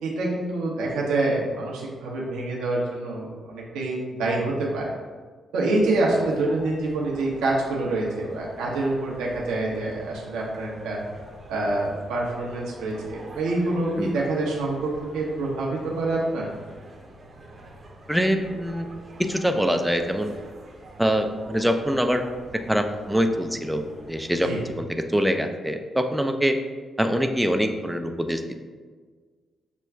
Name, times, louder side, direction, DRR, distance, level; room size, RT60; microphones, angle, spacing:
voice 1, 0.0-4.9 5.5-11.0 11.5-16.5 24.4-24.6, right 2 dB, 75° right, -4 dB, 0.7 m, -26 dB
sound 1, 5.8-24.8, right 2 dB, 45° right, 0.8 m, -46 dB
voice 2, 18.1-18.9 19.2-20.3 21.0-22.2 22.7-24.5 24.8-26.6 27.0-28.6, equal, 5° right, 5 dB, 0.4 m, -24 dB
5.9 x 2.2 x 3.4 m, 1.5 s
hypercardioid pair, 40°, 0 cm